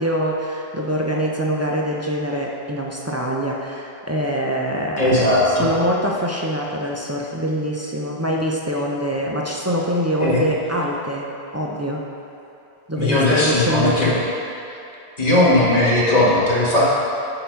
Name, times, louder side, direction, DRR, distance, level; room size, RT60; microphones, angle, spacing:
voice 1, 0.0-11.3 11.5-12.1 12.9-14.2, equal, 20° right, -2 dB, 0.4 m, -24 dB
voice 2, 5.0-5.7 10.2-10.4 12.9-14.1 15.2-16.9, left 1 dB, 35° left, -8 dB, 1.8 m, -17 dB
8.6 x 3.9 x 5.8 m, 2.7 s
omnidirectional pair, 1.1 m